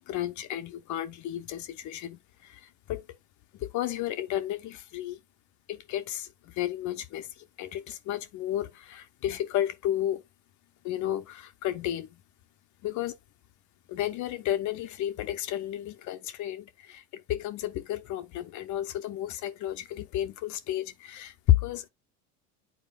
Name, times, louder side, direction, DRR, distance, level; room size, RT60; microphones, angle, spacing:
voice 1, 0.1-2.6 2.9-3.0 3.6-5.2 5.7-6.3 6.6-7.3 7.6-10.2 10.8-12.1 12.8-13.1 13.9-21.8, left 12 dB, 50° left, 0.7 m, -32 dB
9.1 x 4.4 x 2.4 m
supercardioid pair, 100°, 38 cm